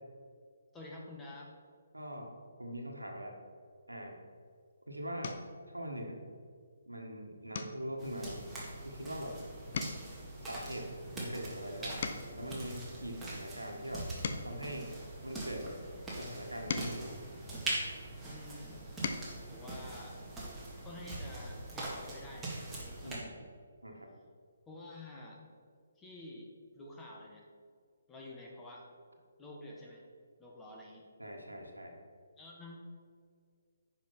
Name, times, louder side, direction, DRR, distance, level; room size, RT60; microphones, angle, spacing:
voice 1, 0.7-1.5 9.6-9.8 18.3-18.9 19.5-20.2 20.8-23.3 24.7-25.4 26.0-27.4 28.1-28.9 29.4-30.0 30.4-31.0 32.4-32.9, left 1 dB, 10° left, -3 dB, 1.5 m, -49 dB
voice 2, 1.9-2.3 2.6-3.4 3.9-4.2 4.9-5.4 5.7-6.2 6.9-8.4 8.8-9.4 10.4-14.1 14.4-14.9 15.2-15.7 16.2-17.2 23.0-23.3 23.8-24.1 31.2-31.9, equal, 90° right, 2 dB, 1.7 m, -42 dB
sound 1, 4.4-4.6 5.2-5.6 6.1-6.5 6.8-7.0 7.5-9.3 9.6-12.5 13.1-15.6 16.3-18.1 18.7-19.4 20.8-20.9 21.2-21.4, left 5 dB, 45° left, 0.8 m, -43 dB
sound 2, 8.0-23.2, right 2 dB, 10° right, 2.0 m, -43 dB
10.0 x 5.4 x 5.5 m, 2.1 s
figure-of-eight pair, 140°, 0 cm